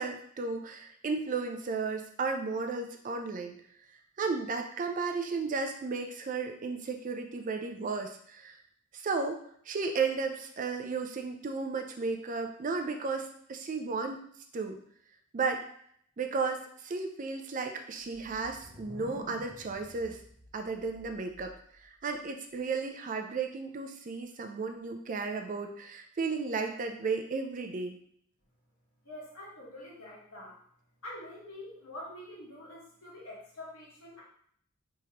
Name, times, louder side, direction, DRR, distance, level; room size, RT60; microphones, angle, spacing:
voice 1, 0.0-3.6 4.2-8.6 8.9-14.3 14.5-14.8 15.3-15.6 16.2-20.2 20.5-21.5 21.8-28.0, right 4 dB, 40° right, 4 dB, 0.4 m, -34 dB
sound 1, 18.0-21.8, equal, 25° left, 0.9 m, -51 dB
voice 2, 29.0-30.5 31.0-34.2, left 1 dB, 80° left, -5 dB, 1.5 m, -46 dB
3.5 x 3.1 x 2.9 m, 0.63 s
head